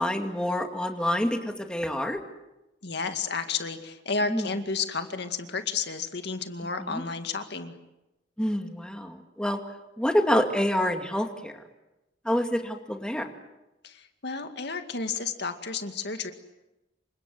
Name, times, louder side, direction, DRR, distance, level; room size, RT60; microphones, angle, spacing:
voice 1, 0.0-1.4 1.7-2.2 4.3-4.4 6.9-7.0 8.4-9.6 10.0-11.5 12.3-13.3, equal, 5° left, 4 dB, 2.3 m, -27 dB
voice 2, 2.8-7.7 13.8-16.3, left 4 dB, 65° left, 7 dB, 2.2 m, -32 dB
28.5 x 25.5 x 7.8 m, 0.98 s
head